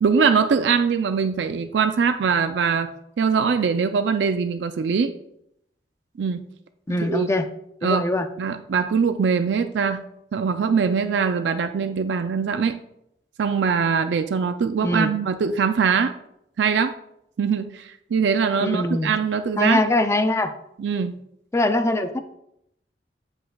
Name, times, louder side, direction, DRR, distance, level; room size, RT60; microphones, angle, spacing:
voice 1, 0.0-2.9 3.2-5.1 6.2-6.4 7.0-7.3 7.8-8.0 8.4-10.0 10.3-12.8 13.4-16.1 16.6-16.9 17.4-19.8 20.8-21.2, right 6 dB, 80° right, 9 dB, 0.4 m, -22 dB
voice 2, 6.9-7.5 7.8-8.3 14.8-15.1 18.6-19.1 19.6-20.5 21.5-22.2, left 2 dB, 15° left, 8 dB, 0.4 m, -22 dB
7.8 x 7.7 x 2.3 m, 0.78 s
head